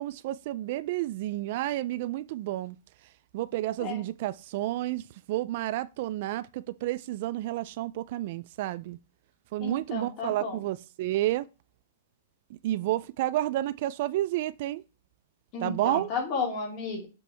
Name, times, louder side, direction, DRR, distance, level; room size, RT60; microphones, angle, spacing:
voice 1, 0.0-2.8 3.3-9.0 9.5-11.5 12.6-14.8 15.6-16.1, right 15 dB, 45° right, 0.3 m, -30 dB
voice 2, 9.6-10.6 15.5-17.1, left 4 dB, 35° left, 2.7 m, -33 dB
7.5 x 4.6 x 3.4 m
hypercardioid pair, 155°, 0 cm